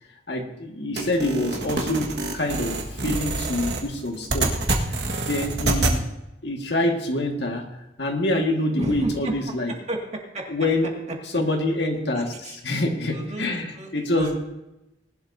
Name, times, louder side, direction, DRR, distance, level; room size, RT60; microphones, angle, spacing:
voice 1, 0.3-4.5 5.3-6.0 6.4-7.7 8.0-9.7 10.5-10.9 11.3-14.3, left 1 dB, 65° left, 2 dB, 1.8 m, -26 dB
sound 1, 1.0-6.0, right 2 dB, 65° right, 1.7 m, -26 dB
voice 2, 8.8-9.3 9.7-10.5 12.1-12.6 13.1-14.3, right 1 dB, 40° right, 0 dB, 2.2 m, -32 dB
20.0 x 11.5 x 2.7 m, 0.94 s
head